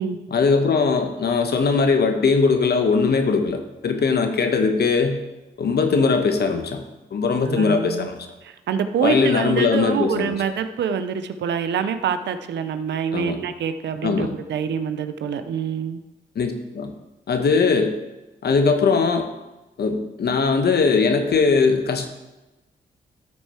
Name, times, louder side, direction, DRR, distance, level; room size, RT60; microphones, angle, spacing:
voice 1, 0.3-5.2 5.6-6.8 7.1-8.2 9.0-10.4 13.1-13.4 14.0-14.3 16.3-16.9 17.3-17.9 18.4-19.2 19.8-22.1, left 4 dB, 65° left, 6 dB, 1.2 m, -20 dB
voice 2, 7.4-8.1 8.7-16.0, right 7 dB, 75° right, 10 dB, 0.7 m, -25 dB
14.0 x 4.7 x 4.4 m, 1.0 s
supercardioid pair, 45°, 18 cm